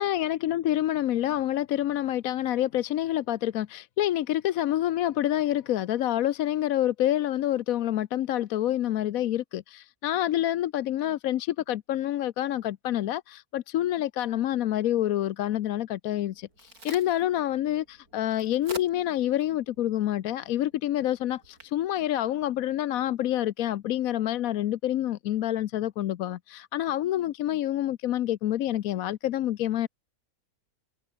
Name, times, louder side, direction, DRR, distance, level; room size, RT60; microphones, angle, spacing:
voice 1, 0.0-29.9, left 13 dB, 75° left, 1.1 m, -27 dB
Crack, 16.2-23.1, right 2 dB, 85° right, 8.1 m, -48 dB
omnidirectional pair, 1.5 m